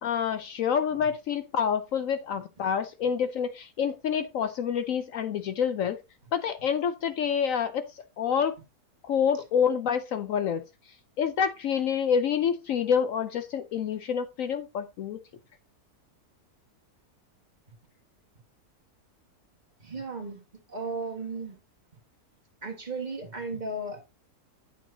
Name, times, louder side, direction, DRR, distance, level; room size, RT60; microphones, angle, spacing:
voice 1, 0.0-6.0 6.3-8.5 9.0-10.6 11.2-15.2, left 7 dB, 70° left, 0.9 m, -27 dB
voice 2, 19.8-20.4 20.7-21.6 22.6-24.0, right 3 dB, 30° right, 1.5 m, -35 dB
9.0 x 8.0 x 2.7 m
omnidirectional pair, 1.6 m